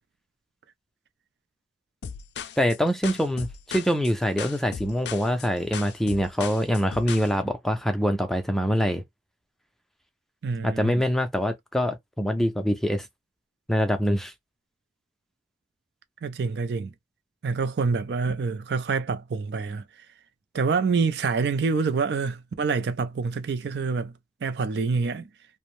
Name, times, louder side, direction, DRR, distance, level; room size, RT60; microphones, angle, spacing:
sound 1, 2.0-7.3, left 7 dB, 65° left, 0.4 m, -37 dB
voice 1, 2.6-9.0 10.6-13.1 13.7-14.3, equal, ahead, 0.4 m, -24 dB
voice 2, 10.4-11.0 16.2-16.9 17.4-19.8 20.5-24.1 24.4-25.3, right 4 dB, 65° right, 0.4 m, -26 dB
2.6 x 2.1 x 3.0 m
head